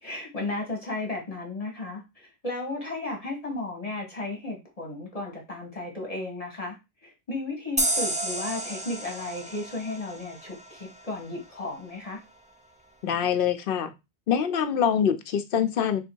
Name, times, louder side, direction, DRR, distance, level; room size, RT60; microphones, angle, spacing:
voice 1, 0.0-12.2, left 2 dB, 35° left, 1.2 m, -34 dB
sound 1, 7.8-11.1, right 1 dB, 10° right, 0.3 m, -31 dB
voice 2, 13.0-13.9 14.3-16.0, left 8 dB, 65° left, 0.8 m, -24 dB
3.5 x 2.7 x 4.4 m
omnidirectional pair, 1.0 m